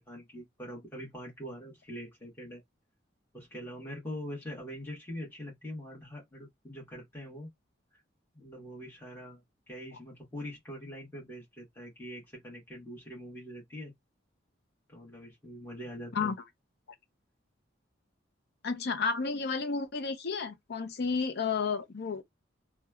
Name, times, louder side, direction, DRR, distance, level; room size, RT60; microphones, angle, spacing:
voice 1, 0.0-2.6 3.3-7.5 7.9-8.0 8.3-13.9 14.9-16.3, equal, 10° left, 1.2 m, -43 dB
voice 2, 18.6-22.2, left 5 dB, 60° left, 0.5 m, -31 dB
3.0 x 2.1 x 2.2 m
head